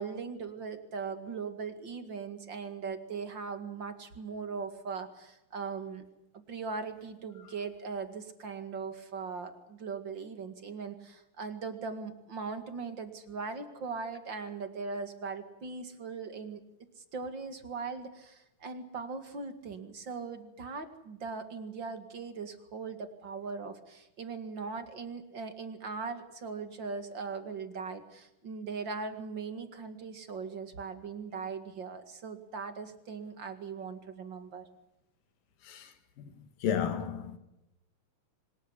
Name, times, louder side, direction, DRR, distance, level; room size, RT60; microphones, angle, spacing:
voice 1, 0.0-6.0 6.5-16.6 17.0-34.6, right 5 dB, 40° right, 2.3 m, -39 dB
voice 2, 36.6-37.4, left 8 dB, 85° left, 3.7 m, -32 dB
25.5 x 20.0 x 8.3 m
omnidirectional pair, 3.8 m